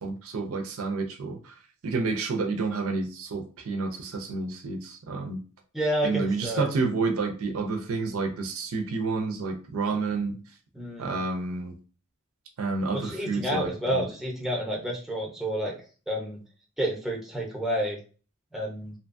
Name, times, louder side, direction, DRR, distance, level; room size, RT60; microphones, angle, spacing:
voice 1, 0.0-1.5 1.8-5.4 6.0-10.4 11.0-11.8 12.6-14.1, right 3 dB, 70° right, 4 dB, 0.5 m, -29 dB
voice 2, 5.7-6.7 10.7-11.2 12.9-15.7 16.1-16.4 16.8-18.0 18.5-18.9, equal, ahead, -2 dB, 0.6 m, -29 dB
2.7 x 2.2 x 2.5 m, 0.37 s
head